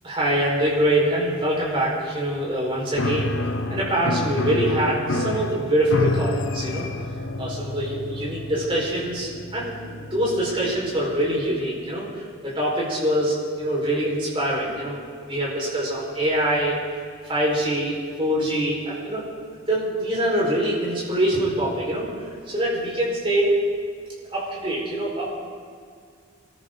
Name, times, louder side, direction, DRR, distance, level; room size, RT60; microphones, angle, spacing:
voice 1, 0.0-3.3 3.7-6.9 7.4-9.7 10.1-12.1 12.4-16.8 17.3-19.2 19.7-22.1 22.5-23.6 24.3-25.4, right 1 dB, 25° right, -5 dB, 5.3 m, -24 dB
Piano, 2.9-11.4, left 2 dB, 65° left, 0.9 m, -29 dB
25.0 x 14.0 x 4.1 m, 2.1 s
head